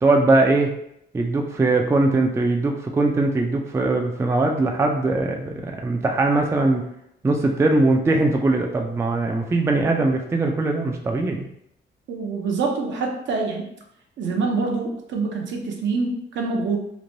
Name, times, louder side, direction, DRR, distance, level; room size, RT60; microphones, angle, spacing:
voice 1, 0.0-0.7 1.1-6.8 7.2-11.5, right 2 dB, 15° right, 2 dB, 0.3 m, -21 dB
voice 2, 12.1-13.7 14.2-16.8, right 4 dB, 70° right, 1 dB, 0.6 m, -25 dB
3.1 x 2.1 x 2.6 m, 0.76 s
cardioid pair, 90°, 20 cm